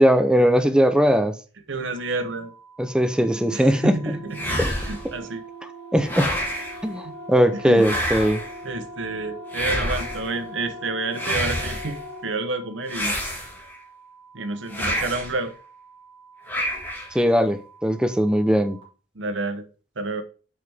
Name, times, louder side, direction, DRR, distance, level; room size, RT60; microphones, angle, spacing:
voice 1, 0.0-1.3 2.8-4.1 4.6-4.7 5.9-6.3 6.8-8.4 17.1-18.8, equal, 5° right, 0.6 m, -19 dB
voice 2, 1.7-2.5 3.5-5.4 7.0-7.2 7.5-8.0 8.6-13.1 14.3-15.5 19.2-19.7 20.0-20.2, right 3 dB, 85° right, 0.9 m, -29 dB
sound 1, 2.0-18.8, right 5 dB, 25° right, 2.1 m, -51 dB
sound 2, 3.3-12.4, equal, 85° left, 3.9 m, -40 dB
sound 3, 4.3-5.1 6.0-6.8 7.8-8.6 9.5-10.3 11.1-12.0 12.9-13.8 14.7-15.4 16.5-17.2, equal, 10° left, 1.9 m, -28 dB
6.3 x 5.8 x 3.5 m
head